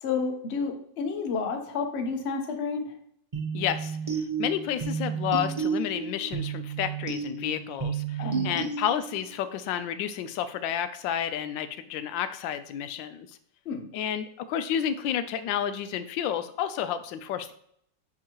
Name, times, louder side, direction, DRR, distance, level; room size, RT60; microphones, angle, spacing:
voice 1, 0.0-2.9 8.2-8.7 13.7-13.9, left 5 dB, 50° left, 5 dB, 0.8 m, -31 dB
sound 1, 3.3-9.3, right 6 dB, 35° right, 0.5 m, -32 dB
voice 2, 3.5-4.0 4.4-13.3 13.9-17.5, left 9 dB, 85° left, 11 dB, 1.3 m, -30 dB
9.7 x 3.6 x 2.9 m, 0.68 s
omnidirectional pair, 2.0 m